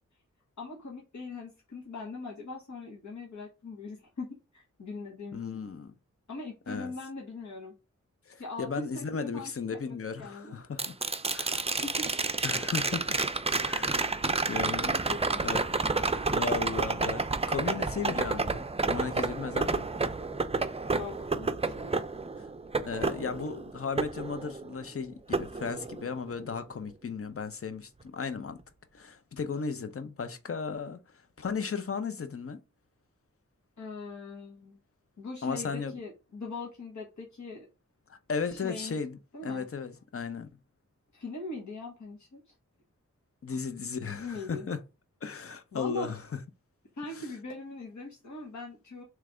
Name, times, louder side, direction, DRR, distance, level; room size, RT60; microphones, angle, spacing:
voice 1, 0.6-5.7 6.3-7.7 8.4-10.6 11.6-12.1 12.6-12.7 14.8-16.3 20.9-21.9 33.8-34.8 35.2-37.7 38.5-39.0 39.3-39.7 41.1-42.5 43.5-43.6 44.0-44.7 45.7-46.1 46.9-49.0, left 3 dB, 75° left, 1.3 m, -41 dB
voice 2, 5.3-5.9 6.7-6.9 8.3-11.0 11.3-11.7 12.4-13.2 13.6-14.2 14.5-14.9 15.4-15.6 16.3-19.9 22.4-22.5 22.8-28.6 28.9-31.0 31.4-32.6 35.4-35.9 38.1-40.5 43.4-44.8 45.2-46.2 47.1-47.2, left 5 dB, 50° left, 0.7 m, -35 dB
sound 1, 10.8-24.9 25.3-26.4 28.6-28.7, right 3 dB, 20° right, 0.5 m, -30 dB
3.3 x 3.2 x 4.9 m
wide cardioid pair, 65°, 29 cm